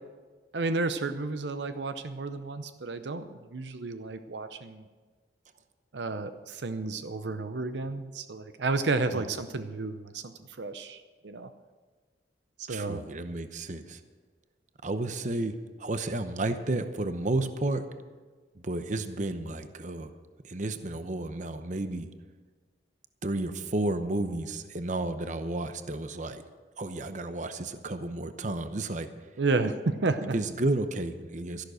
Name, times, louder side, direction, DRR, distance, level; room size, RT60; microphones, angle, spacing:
voice 1, 0.5-4.8 5.9-10.3 10.6-11.5 12.6-13.0 29.4-30.3, right 3 dB, 75° right, 10 dB, 0.7 m, -31 dB
voice 2, 12.7-14.0 14.8-17.8 18.5-20.1 20.4-22.1 23.2-26.4 26.8-29.1 30.3-31.6, right 2 dB, 45° right, 9 dB, 0.8 m, -32 dB
13.0 x 11.5 x 6.4 m, 1.4 s
head